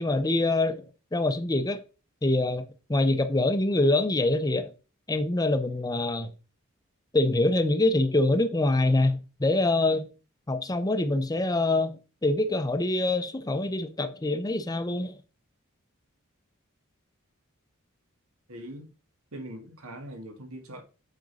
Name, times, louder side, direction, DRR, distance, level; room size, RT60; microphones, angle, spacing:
voice 1, 0.0-1.8 2.2-4.7 5.1-6.3 7.1-10.1 10.5-11.9 12.2-15.2, left 2 dB, 20° left, 0.6 m, -25 dB
voice 2, 18.5-18.9 19.3-20.8, right 1 dB, 80° right, 1.9 m, -41 dB
7.7 x 5.1 x 5.3 m
head